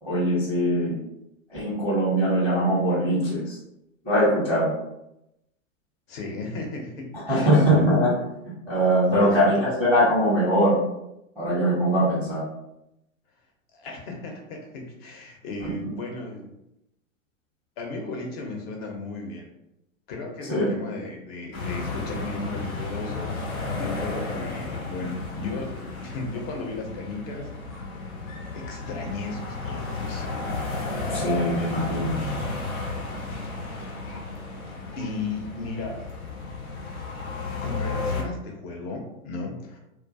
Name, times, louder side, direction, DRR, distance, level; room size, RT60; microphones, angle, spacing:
voice 1, 0.0-1.0 1.5-3.6 4.0-4.8 7.1-8.1 8.7-9.5 9.8-10.8 11.4-12.4 15.6-15.7 20.5-20.7 31.1-32.4, equal, 5° left, -11 dB, 0.6 m, -22 dB
voice 2, 6.1-7.9 9.1-9.7 13.7-16.5 17.8-19.5 20.1-27.9 28.5-30.3 35.0-36.0 37.6-39.8, left 3 dB, 45° left, 2 dB, 0.7 m, -35 dB
sound 1, 21.5-38.2, left 3 dB, 90° left, 0.8 m, -33 dB
2.3 x 2.1 x 2.5 m, 0.85 s
hypercardioid pair, 115°, 42 cm